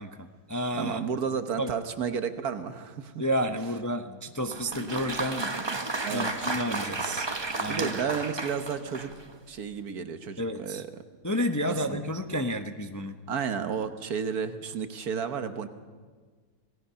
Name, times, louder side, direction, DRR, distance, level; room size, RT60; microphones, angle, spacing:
voice 1, 0.0-1.0 1.6-1.7 3.2-5.5 6.1-7.3 7.6-7.9 10.4-10.8 11.2-13.1, equal, 15° left, 6 dB, 0.6 m, -31 dB
voice 2, 0.7-3.2 6.0-6.3 7.7-9.1 9.5-11.0 11.7-12.0 13.3-15.7, right 6 dB, 70° right, 9 dB, 1.6 m, -32 dB
Applause, 4.5-9.3, right 3 dB, 20° right, 0.8 m, -33 dB
27.5 x 18.5 x 5.7 m, 1.5 s
omnidirectional pair, 1.7 m